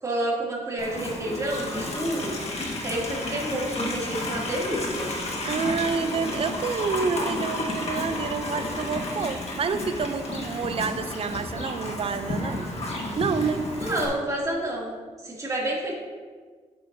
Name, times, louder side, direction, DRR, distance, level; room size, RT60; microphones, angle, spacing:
voice 1, 0.0-2.3 2.8-5.1 13.7-15.9, right 1 dB, 25° right, -4 dB, 2.5 m, -29 dB
Livestock farm animals working animals, 0.8-14.1, left 2 dB, 55° left, 1.6 m, -32 dB
voice 2, 5.4-12.7 13.2-13.7, right 5 dB, 50° right, 10 dB, 0.6 m, -28 dB
10.0 x 7.9 x 2.7 m, 1.5 s
cardioid pair, 100°, 13 cm